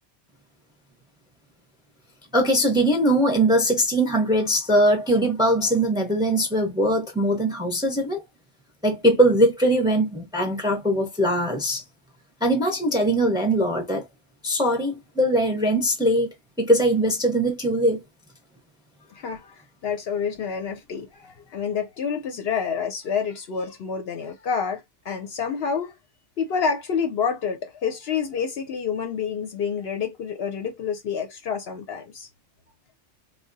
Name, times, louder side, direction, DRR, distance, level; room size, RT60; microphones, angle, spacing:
voice 1, 2.3-8.2 8.8-11.8 12.4-14.0 14.4-16.3 16.6-18.0, right 1 dB, 5° right, 0.6 m, -21 dB
voice 2, 19.1-25.9 26.4-32.3, left 6 dB, 65° left, 0.7 m, -28 dB
3.6 x 2.2 x 2.6 m
omnidirectional pair, 1.3 m